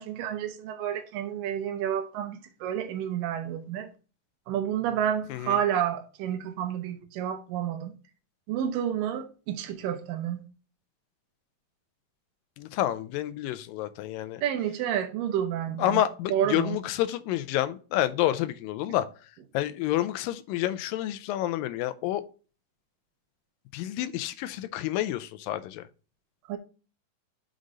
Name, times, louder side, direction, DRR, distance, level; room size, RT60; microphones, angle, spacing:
voice 1, 0.0-3.9 4.5-8.0 8.5-10.4 14.4-16.0 16.3-16.8 26.5-26.6, right 10 dB, 80° right, 2.4 m, -30 dB
voice 2, 12.6-14.4 15.8-19.1 19.5-22.2 23.7-25.8, left 13 dB, 85° left, 2.3 m, -29 dB
6.4 x 3.9 x 4.8 m
omnidirectional pair, 3.9 m